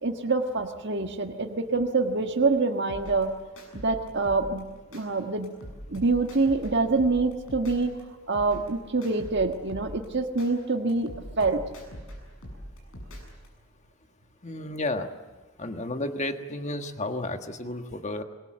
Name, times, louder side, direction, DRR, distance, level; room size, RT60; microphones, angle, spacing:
voice 1, 0.0-3.4 3.7-5.5 5.9-7.9 8.3-11.1 11.4-11.6, right 3 dB, 50° right, 4 dB, 1.5 m, -26 dB
sound 1, 2.9-5.0 5.4-8.0 8.3-10.5 10.9-13.5, equal, 65° left, 7.1 m, -43 dB
voice 2, 14.4-15.1 15.6-18.2, left 2 dB, 30° left, 7 dB, 1.5 m, -32 dB
26.5 x 21.5 x 7.7 m, 1.2 s
head